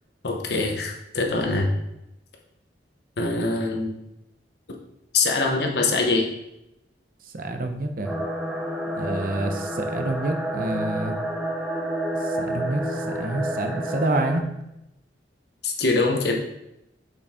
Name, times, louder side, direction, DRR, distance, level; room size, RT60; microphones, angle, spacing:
voice 1, 0.2-1.7 3.2-3.9 5.1-6.3 15.6-16.4, left 3 dB, 65° left, 1 dB, 0.9 m, -23 dB
voice 2, 7.3-8.1 9.0-11.2 12.4-14.5, right 2 dB, 50° right, 6 dB, 0.7 m, -27 dB
sound 1, 8.1-14.4, right 1 dB, 5° right, 0.7 m, -29 dB
6.8 x 5.2 x 3.6 m, 0.86 s
head